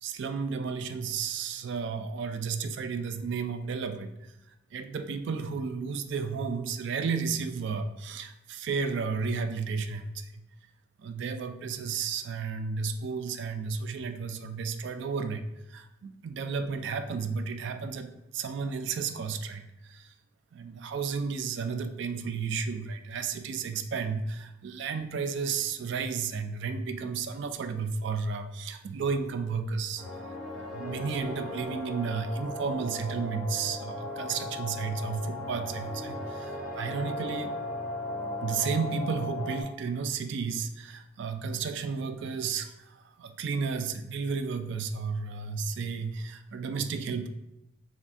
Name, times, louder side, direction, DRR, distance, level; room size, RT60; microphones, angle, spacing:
voice 1, 0.0-4.3 4.7-10.4 11.0-15.4 15.7-20.1 20.5-30.0 30.5-37.5 38.4-47.3, right 5 dB, 55° right, 9 dB, 0.3 m, -33 dB
sound 1, 30.0-39.6, left 1 dB, ahead, 0.8 m, -37 dB
3.5 x 2.5 x 4.0 m, 0.91 s
head